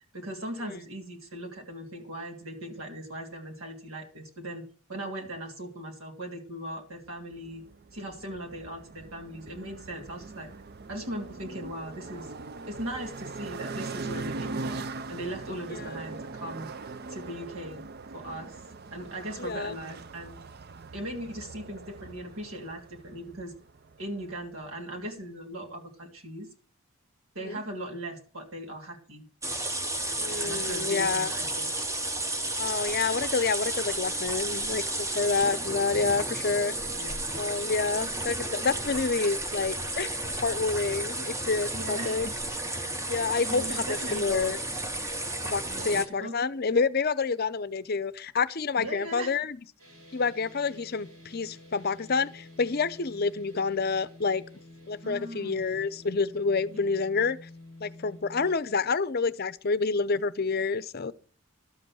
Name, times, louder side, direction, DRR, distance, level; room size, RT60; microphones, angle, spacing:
voice 1, 0.1-4.6 4.9-7.6 7.9-10.5 10.9-12.3 12.7-14.8 15.1-16.7 17.1-17.8 18.1-18.5 18.9-20.4 20.9-23.5 24.0-26.5 27.3-29.2 30.4-31.8 36.9-37.4 41.7-42.2 43.5-44.5 45.7-46.3 48.8-49.3 55.0-55.7, right 1 dB, 70° right, 2.9 m, -39 dB
sound 1, 7.3-24.8, right 3 dB, 45° right, 0.5 m, -41 dB
voice 2, 15.7-16.0 19.4-19.7 27.4-27.6 30.2-31.3 32.6-36.8 37.3-42.3 43.1-44.6 45.4-49.6 50.1-54.4 54.9-57.4 57.8-61.1, left 4 dB, 45° left, 0.6 m, -28 dB
sound 2, 29.4-46.1, right 2 dB, 15° right, 0.7 m, -32 dB
sound 3, 49.8-58.5, left 2 dB, 90° right, 6.4 m, -50 dB
12.5 x 7.9 x 6.2 m
head